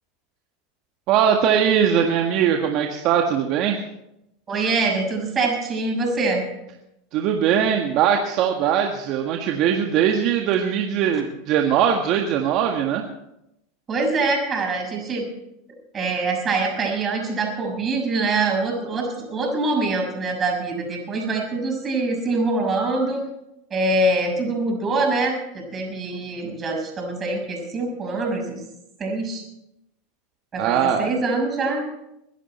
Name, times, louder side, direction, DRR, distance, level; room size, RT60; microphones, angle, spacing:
voice 1, 1.1-3.8 7.1-13.0 30.6-31.1, right 8 dB, 55° right, 3 dB, 1.7 m, -20 dB
voice 2, 4.5-6.5 13.9-15.2 15.9-23.2 23.7-28.6 29.0-29.4 30.5-31.8, right 3 dB, 30° right, 1 dB, 6.2 m, -24 dB
22.5 x 11.5 x 4.4 m, 0.86 s
supercardioid pair, 115°, 0 cm